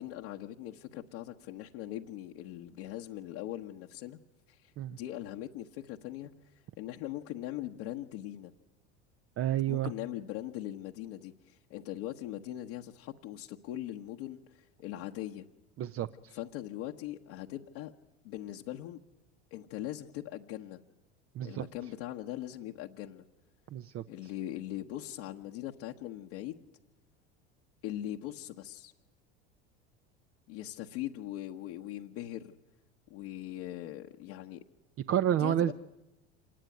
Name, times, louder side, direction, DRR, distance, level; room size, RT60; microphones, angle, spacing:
voice 1, 0.0-4.2 4.5-6.5 6.8-8.5 9.7-15.5 16.3-17.9 18.2-19.0 19.5-20.8 21.4-23.2 24.1-26.7 27.8-28.9 30.5-32.5 33.1-34.6 35.3-35.7, left 13 dB, 65° left, 0 dB, 1.3 m, -41 dB
voice 2, 9.4-9.9 15.8-16.3 21.4-21.6 23.7-24.0 35.1-35.7, right 11 dB, 40° right, 11 dB, 0.8 m, -30 dB
26.5 x 19.0 x 9.3 m, 0.99 s
hypercardioid pair, 85°, 34 cm